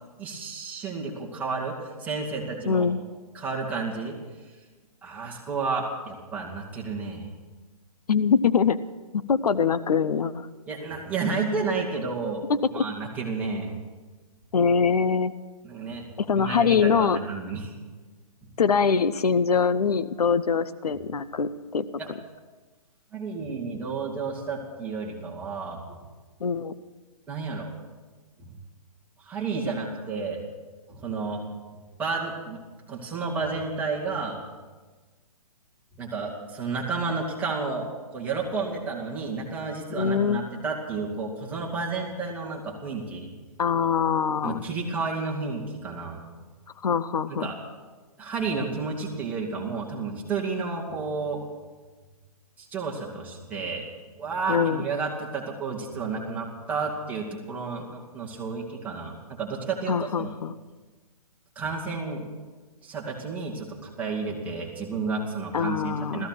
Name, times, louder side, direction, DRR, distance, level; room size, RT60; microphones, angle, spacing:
voice 1, 0.2-2.9 3.3-4.2 5.0-7.3 10.7-12.5 12.7-13.7 15.6-16.0 16.3-17.7 22.0-22.1 23.1-26.0 27.3-27.7 28.4-28.5 29.2-30.4 30.9-31.4 32.0-32.6 32.9-34.4 36.0-37.9 38.1-43.3 44.4-46.2 47.3-47.6 48.2-51.4 52.6-53.8 54.2-60.3 61.6-62.3 62.8-66.3, right 4 dB, 10° right, -3 dB, 2.2 m, -31 dB
voice 2, 2.7-3.0 8.1-8.8 9.1-10.5 12.5-12.9 14.5-15.3 16.2-17.2 18.6-21.8 26.4-26.7 39.9-40.4 43.6-44.6 46.8-47.5 54.5-54.8 59.9-60.5 65.5-66.3, left 6 dB, 75° left, 14 dB, 0.8 m, -23 dB
15.0 x 15.0 x 6.1 m, 1.3 s
hypercardioid pair, 160°, 20 cm